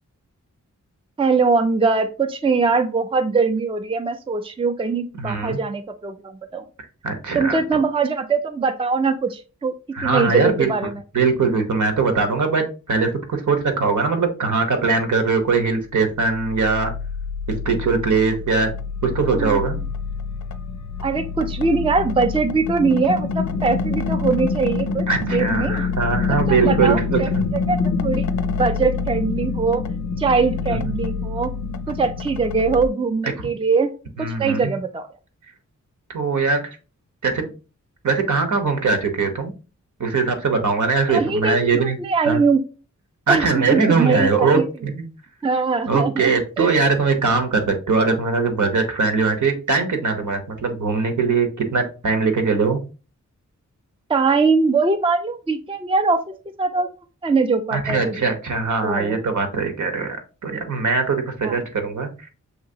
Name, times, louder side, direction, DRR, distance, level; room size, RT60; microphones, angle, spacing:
voice 1, 1.2-6.7 7.3-9.7 10.0-11.0 19.3-19.6 21.0-25.8 26.3-29.8 30.2-31.5 31.9-33.9 34.2-35.1 41.1-42.6 43.3-44.6 45.4-46.7 54.1-56.9 57.2-58.2 58.8-59.2 61.4-61.6, right 4 dB, 15° right, 7 dB, 0.4 m, -22 dB
voice 2, 5.2-5.6 7.0-7.6 9.9-10.7 11.1-16.9 17.5-18.7 19.0-19.8 25.1-27.2 30.7-30.8 33.4-33.5 34.2-34.7 36.1-36.6 37.2-37.5 38.0-39.5 40.0-42.0 42.3-42.4 43.3-45.0 45.9-52.8 57.7-60.2 60.4-62.1, right 4 dB, 70° right, 5 dB, 1.1 m, -21 dB
sound 1, 15.9-32.9, left 5 dB, 65° left, 0.5 m, -26 dB
6.3 x 2.9 x 2.8 m, 0.34 s
wide cardioid pair, 70°, 31 cm